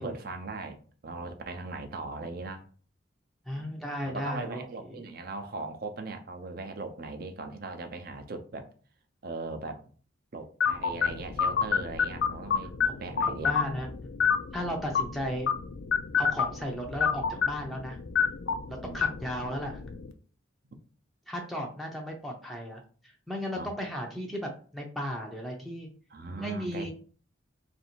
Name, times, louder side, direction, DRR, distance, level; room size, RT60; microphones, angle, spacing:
voice 1, 0.0-2.7 3.5-8.7 9.2-9.8 10.3-12.7 13.0-13.6 18.8-19.2 23.6-23.7 26.1-26.9, right 3 dB, 50° right, 0.6 m, -39 dB
voice 2, 3.5-4.7 12.9-13.0 13.3-13.9 14.5-15.5 16.2-18.0 18.7-19.8 21.3-22.8 23.3-25.9 26.4-26.9, equal, ahead, 0.5 m, -35 dB
sound 1, 10.6-20.1, left 6 dB, 60° left, 0.4 m, -29 dB
3.2 x 2.6 x 4.3 m
head